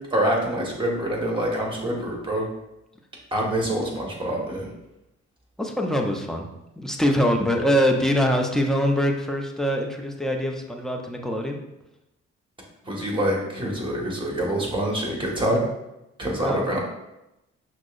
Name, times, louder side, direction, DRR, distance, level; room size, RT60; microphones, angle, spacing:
voice 1, 0.1-2.5 3.3-4.7 12.8-15.6 16.2-16.8, right 1 dB, 15° right, -2 dB, 1.4 m, -25 dB
voice 2, 5.6-6.5 6.8-11.6 16.4-16.7, equal, ahead, 2 dB, 0.6 m, -23 dB
6.0 x 2.1 x 2.5 m, 0.91 s
hypercardioid pair, 50°, 32 cm